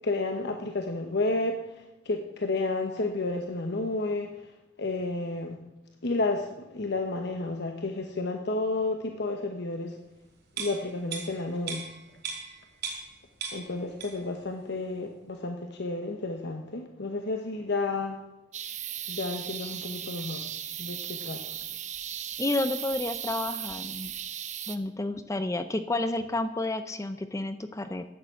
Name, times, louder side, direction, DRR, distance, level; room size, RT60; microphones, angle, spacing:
voice 1, 0.0-4.5 4.8-5.6 6.0-10.0 10.6-11.9 13.5-18.2 19.1-20.5 20.8-21.5, left 2 dB, 60° left, 4 dB, 1.1 m, -31 dB
sound 1, 10.5-13.2 13.4-14.4 14.7-14.8, right 5 dB, 60° right, 4.1 m, -38 dB
sound 2, 18.5-24.8, right 10 dB, 40° right, 0.9 m, -37 dB
voice 2, 22.4-24.1 24.7-28.1, left 2 dB, 15° left, 10 dB, 0.5 m, -30 dB
11.5 x 8.9 x 7.8 m, 0.97 s
head